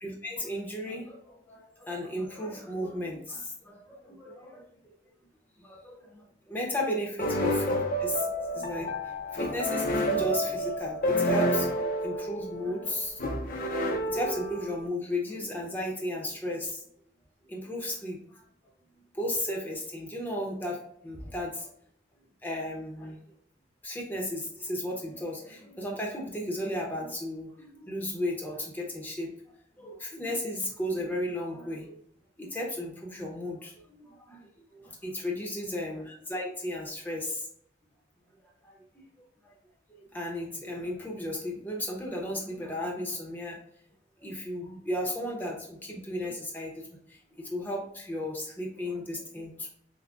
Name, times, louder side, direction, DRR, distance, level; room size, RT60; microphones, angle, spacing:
voice 1, 0.0-4.9 5.6-7.7 8.0-13.2 13.6-16.8 17.5-18.2 19.1-21.7 22.4-23.2 23.8-29.3 29.8-32.0 32.4-37.5 38.6-38.8 39.2-39.3 40.1-43.6 44.2-46.9 47.4-49.7, left 1 dB, 10° left, -2 dB, 0.7 m, -35 dB
sound 1, 7.2-14.9, equal, 45° left, 0.5 m, -29 dB
5.8 x 2.1 x 2.4 m, 0.68 s
head